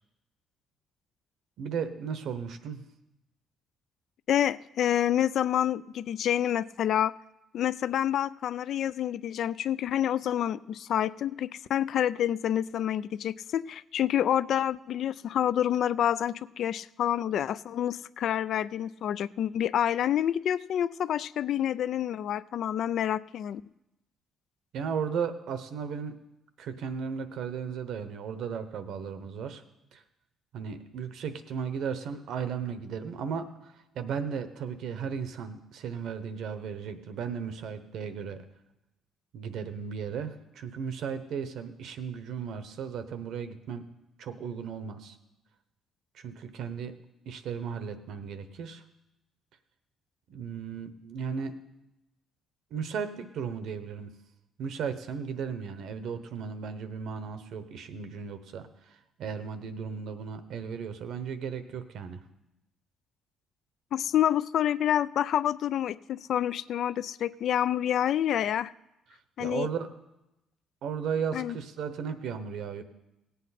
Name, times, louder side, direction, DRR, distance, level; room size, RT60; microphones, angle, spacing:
voice 1, 1.6-2.8 24.7-26.1 26.6-29.6 29.9-30.0 30.5-38.4 39.3-43.9 44.2-45.2 46.1-46.9 47.3-48.8 50.3-51.5 52.7-54.1 54.6-62.2 69.1-69.9 70.8-72.8, right 6 dB, 75° right, 10 dB, 0.9 m, -35 dB
voice 2, 4.3-7.1 7.5-23.6 63.9-68.7 69.4-69.7 71.3-71.6, left 10 dB, 70° left, 18 dB, 0.3 m, -28 dB
17.0 x 8.3 x 4.2 m, 0.92 s
cardioid pair, 90°, 0 cm